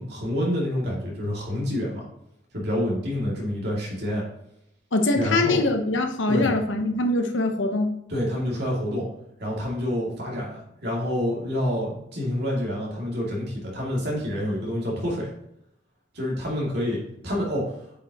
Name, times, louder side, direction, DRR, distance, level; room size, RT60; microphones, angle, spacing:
voice 1, 0.0-2.0 2.5-4.2 5.1-5.6 6.3-6.6 8.1-9.1 9.4-15.3 16.1-17.8, equal, 55° right, -4 dB, 2.6 m, -28 dB
voice 2, 4.9-7.9, left 2 dB, 70° left, 5 dB, 1.0 m, -23 dB
8.7 x 5.9 x 3.0 m, 0.78 s
head